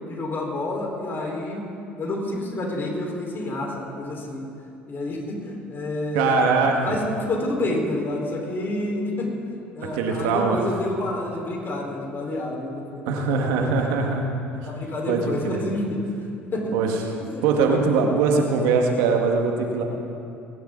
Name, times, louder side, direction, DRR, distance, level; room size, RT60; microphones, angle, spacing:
voice 1, 0.1-1.6 2.0-4.5 4.9-6.3 6.8-13.7 14.0-14.1 14.6-16.0 16.5-16.7 17.2-17.4 17.9-18.1, left 1 dB, 40° left, -1 dB, 4.8 m, -29 dB
voice 2, 6.1-6.8 9.9-10.6 13.1-14.3 14.5-14.7 15.1-15.6 16.7-16.9 17.4-19.8, right 4 dB, 75° right, 2 dB, 2.0 m, -21 dB
29.0 x 11.5 x 4.1 m, 2.5 s
hypercardioid pair, 70°, 6 cm